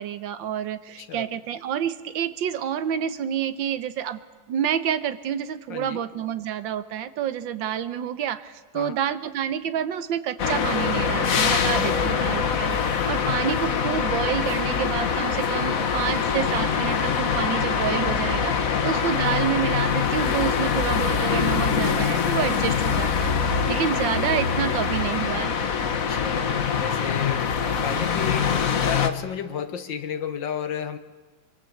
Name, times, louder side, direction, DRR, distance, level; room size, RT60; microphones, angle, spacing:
voice 1, 0.0-4.2 4.5-23.3 23.7-25.5, right 9 dB, 65° right, 12 dB, 1.7 m, -28 dB
voice 2, 1.0-1.3 5.7-6.0 8.7-9.0 11.7-12.3 18.7-19.0 25.9-31.0, left 7 dB, 65° left, 10 dB, 1.9 m, -33 dB
sound 1, 10.4-29.1, left 6 dB, 45° left, 1.5 m, -24 dB
25.0 x 23.5 x 7.9 m, 1.4 s
omnidirectional pair, 2.3 m